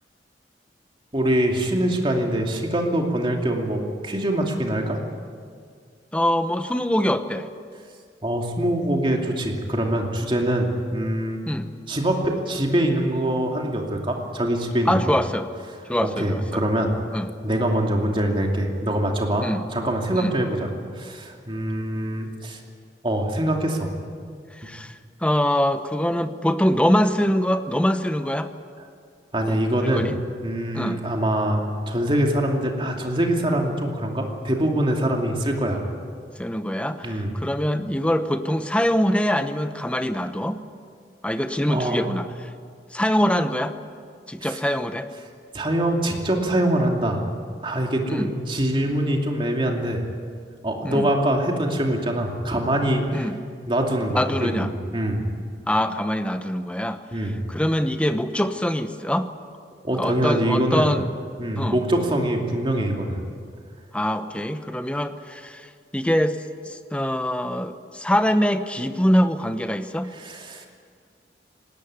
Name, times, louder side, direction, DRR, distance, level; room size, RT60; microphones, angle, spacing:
voice 1, 1.1-5.0 8.2-11.4 11.9-15.1 16.2-16.9 17.4-20.7 21.0-22.6 23.0-23.9 29.3-30.1 30.4-35.8 37.0-37.3 41.7-42.1 44.4-44.6 45.5-47.2 47.6-50.0 50.6-53.2 53.7-55.2 57.1-57.4 59.8-60.9 61.4-63.2 70.1-70.7, right 1 dB, 30° right, 1 dB, 2.7 m, -24 dB
voice 2, 6.1-7.5 11.5-11.7 14.9-15.5 15.9-16.6 17.1-17.3 19.4-19.6 20.1-20.3 24.6-24.9 25.2-28.5 29.5-30.2 30.7-31.0 36.4-40.6 41.2-42.3 42.9-43.7 44.3-45.1 48.1-48.3 50.8-51.1 53.1-53.3 54.1-54.7 55.7-57.0 57.5-59.3 60.0-61.0 61.6-61.8 63.9-65.6 65.9-66.4 66.7-70.1, equal, 5° left, 9 dB, 0.9 m, -23 dB
19.5 x 18.5 x 9.6 m, 2.1 s
head